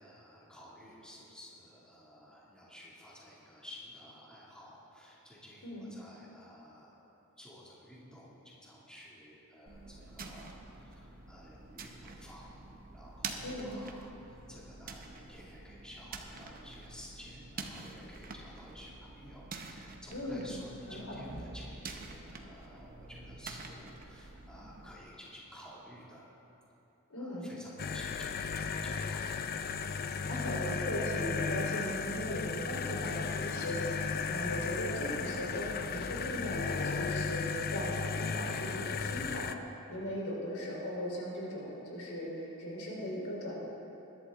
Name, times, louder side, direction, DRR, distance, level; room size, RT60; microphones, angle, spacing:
voice 1, 0.0-7.0 7.4-12.7 12.9-26.3 27.2-29.3, equal, 5° left, -6 dB, 2.3 m, -53 dB
sound 1, 9.7-25.0, right 3 dB, 45° right, 1.0 m, -47 dB
voice 2, 13.4-13.7 20.1-20.5 20.9-21.2 27.1-27.5 30.3-43.6, equal, 85° left, -3 dB, 3.7 m, -38 dB
sound 2, 27.8-39.5, left 5 dB, 45° left, 0.5 m, -35 dB
21.0 x 11.5 x 3.7 m, 3.0 s
head